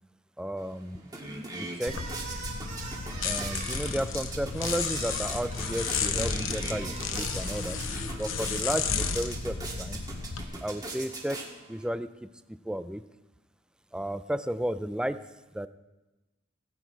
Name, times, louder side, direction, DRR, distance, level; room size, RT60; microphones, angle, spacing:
voice 1, 0.4-1.0 1.5-2.1 3.2-7.8 8.2-10.0 10.6-13.0 13.9-15.7, equal, 5° right, 13 dB, 0.4 m, -33 dB
sound 1, 0.6-0.7 1.0-11.9, right 2 dB, 20° right, 1.8 m, -41 dB
sound 2, 1.8-8.4, right 4 dB, 40° right, 2.1 m, -43 dB
sound 3, 1.9-10.4, left 5 dB, 85° left, 0.9 m, -33 dB
17.0 x 8.4 x 4.6 m, 1.1 s
head